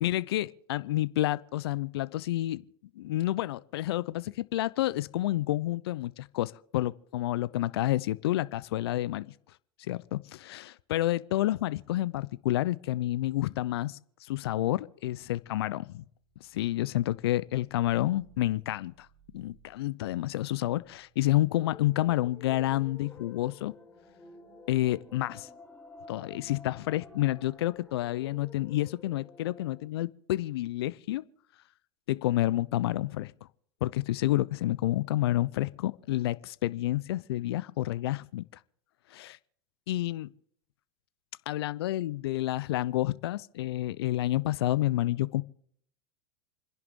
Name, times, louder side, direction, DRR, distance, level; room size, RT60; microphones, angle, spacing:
voice 1, 0.0-2.6 3.0-9.3 9.8-16.0 16.4-19.1 19.3-23.7 24.7-25.5 26.1-31.2 32.1-33.3 33.8-38.4 39.1-39.4 39.9-40.3 41.5-45.4, left 15 dB, 75° left, 0.7 m, -29 dB
sound 1, 15.2-28.3, right 1 dB, ahead, 5.6 m, -62 dB
sound 2, 21.5-29.9, left 4 dB, 15° left, 2.0 m, -52 dB
29.0 x 11.0 x 3.8 m
hypercardioid pair, 95°, 13 cm